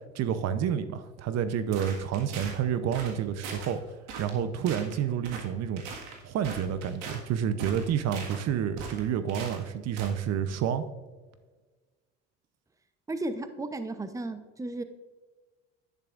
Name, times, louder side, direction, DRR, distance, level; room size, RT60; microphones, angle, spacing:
voice 1, 0.1-3.8 4.2-5.8 6.2-10.8, right 8 dB, 55° right, 12 dB, 0.7 m, -29 dB
sound 1, 1.7-2.6 2.9-3.2 3.4-3.7 4.1-4.4 4.7-4.9 5.2-5.5 5.8-7.2 7.6-8.4 8.8-9.6 10.0-10.2, right 5 dB, 75° right, 1.7 m, -40 dB
voice 2, 13.1-14.8, right 2 dB, 10° right, 10 dB, 0.7 m, -34 dB
10.5 x 10.0 x 2.5 m, 1.3 s
supercardioid pair, 85°, 30 cm